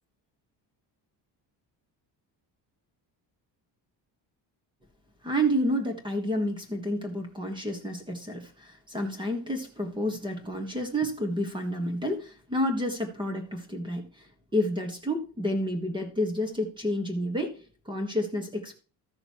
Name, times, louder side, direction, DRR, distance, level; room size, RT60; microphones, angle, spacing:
voice 1, 5.2-18.7, equal, 10° right, 5 dB, 1.5 m, -30 dB
14.0 x 6.6 x 3.0 m, 0.36 s
cardioid pair, 180°, 42 cm